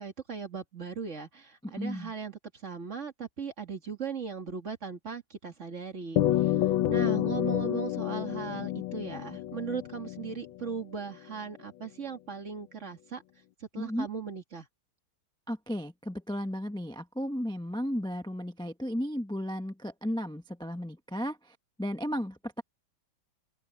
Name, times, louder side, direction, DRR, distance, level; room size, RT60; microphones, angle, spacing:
voice 1, 0.0-13.2 13.6-14.7, right 6 dB, 40° right, 2.3 m, -38 dB
voice 2, 1.8-2.1 13.8-14.1 15.5-21.4 21.8-22.6, equal, 5° left, 0.5 m, -34 dB
sound 1, 6.2-10.8, left 13 dB, 85° left, 1.6 m, -29 dB
open air
omnidirectional pair, 2.1 m